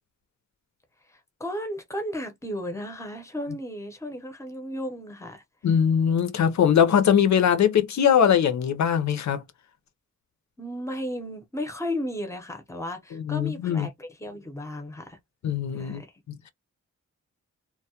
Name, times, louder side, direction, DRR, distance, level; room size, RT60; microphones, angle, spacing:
voice 1, 1.1-5.4 10.6-15.2 15.7-16.1, left 1 dB, 10° left, 0.6 m, -34 dB
voice 2, 5.6-9.4 13.1-13.9 15.4-16.0 16.3-16.5, left 8 dB, 70° left, 0.5 m, -21 dB
2.2 x 2.1 x 2.7 m
wide cardioid pair, 95°, 29 cm